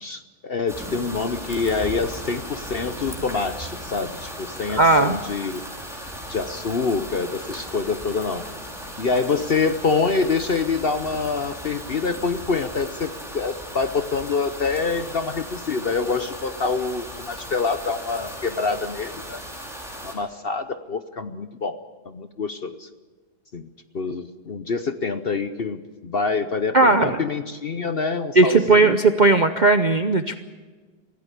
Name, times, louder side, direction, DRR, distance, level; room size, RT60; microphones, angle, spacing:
voice 1, 0.0-5.6 6.3-8.4 9.0-19.4 20.0-21.8 22.0-22.9 23.5-23.7 23.9-29.0, left 4 dB, 45° left, 10 dB, 0.8 m, -26 dB
sound 1, 0.7-20.2, equal, ahead, 4.4 m, -37 dB
voice 2, 4.7-5.2 26.7-27.2 28.4-30.4, right 3 dB, 45° right, 8 dB, 0.6 m, -17 dB
24.0 x 15.5 x 8.3 m, 1.3 s
omnidirectional pair, 1.7 m